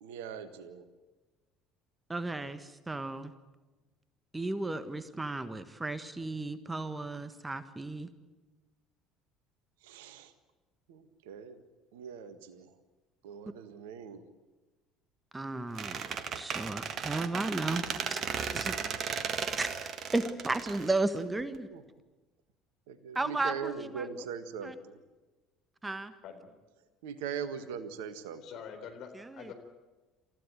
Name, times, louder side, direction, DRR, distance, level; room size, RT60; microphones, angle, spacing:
voice 1, 0.0-0.9 9.8-10.3 10.9-11.6 11.9-12.7 13.2-14.2 18.7-19.0 21.7-21.8 22.9-25.0 27.0-28.4, right 7 dB, 65° right, 12 dB, 1.6 m, -41 dB
voice 2, 2.1-3.3 4.3-8.1 15.3-16.0 16.3-17.8 18.1-18.2 18.5-18.7 19.6-19.7 20.1-21.7 23.1-24.1 24.6-24.7 25.8-26.1 29.1-29.5, right 2 dB, 15° right, 12 dB, 1.5 m, -34 dB
Squeak, 15.8-21.6, right 7 dB, 45° right, 1.6 m, -35 dB
voice 3, 28.4-29.5, left 7 dB, 55° left, 4 dB, 4.3 m, -45 dB
28.0 x 15.5 x 9.2 m, 1.2 s
figure-of-eight pair, 60°, 0 cm